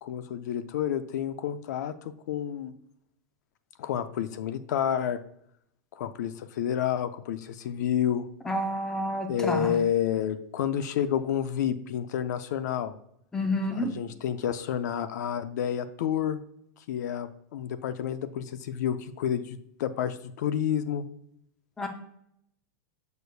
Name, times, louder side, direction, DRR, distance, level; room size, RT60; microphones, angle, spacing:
voice 1, 0.0-2.7 3.8-5.2 5.9-8.2 9.3-12.9 13.8-16.4 16.9-21.0, left 9 dB, 65° left, 13 dB, 0.4 m, -29 dB
voice 2, 8.5-9.7 13.3-13.9 21.8-21.9, left 1 dB, 5° left, 5 dB, 0.4 m, -29 dB
6.6 x 6.3 x 2.3 m, 0.74 s
supercardioid pair, 175°, 10 cm